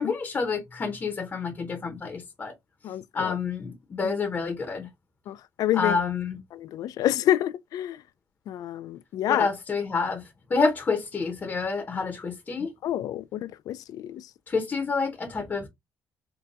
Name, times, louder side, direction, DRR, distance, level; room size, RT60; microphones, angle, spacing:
voice 1, 0.0-2.5 3.1-4.9 5.7-6.4 9.3-12.7 14.5-15.7, left 4 dB, 25° left, 0.7 m, -28 dB
voice 2, 2.8-3.3 5.3-6.0 6.6-8.0 8.5-9.5 12.8-14.2, left 12 dB, 60° left, 0.3 m, -28 dB
4.0 x 2.2 x 3.5 m
cardioid pair, 150°, 7 cm